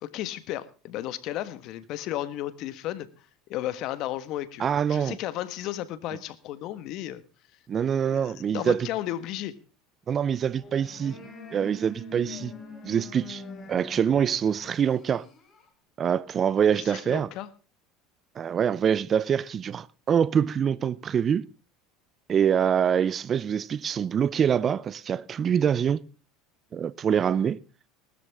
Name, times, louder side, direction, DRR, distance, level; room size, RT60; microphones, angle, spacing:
voice 1, 0.0-3.1 3.5-7.2 8.1-9.6 16.7-17.5, left 13 dB, 60° left, 1.4 m, -34 dB
voice 2, 4.6-5.2 7.7-8.9 10.1-11.1 11.5-12.5 12.8-13.4 13.7-15.3 16.0-17.3 18.4-21.5 22.3-26.0 26.7-27.6, right 8 dB, 35° right, 0.6 m, -25 dB
sound 1, 10.5-15.7, left 2 dB, 30° left, 5.0 m, -44 dB
19.0 x 13.0 x 3.6 m
supercardioid pair, 95°, 0 cm